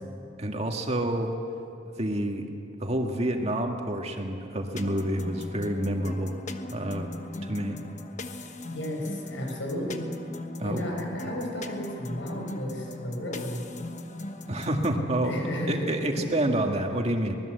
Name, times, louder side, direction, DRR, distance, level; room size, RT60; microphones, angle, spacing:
voice 1, 0.4-1.3 2.0-2.5 2.8-6.4 6.7-7.1 7.4-7.8 10.6-10.8 14.5-17.3, right 1 dB, 35° right, 3 dB, 1.9 m, -28 dB
sound 1, 4.8-15.0, left 1 dB, 40° left, 1.3 m, -39 dB
voice 2, 8.7-10.1 10.6-13.6 15.2-16.3, left 1 dB, 90° left, 1 dB, 6.2 m, -33 dB
24.5 x 20.0 x 8.0 m, 2.7 s
head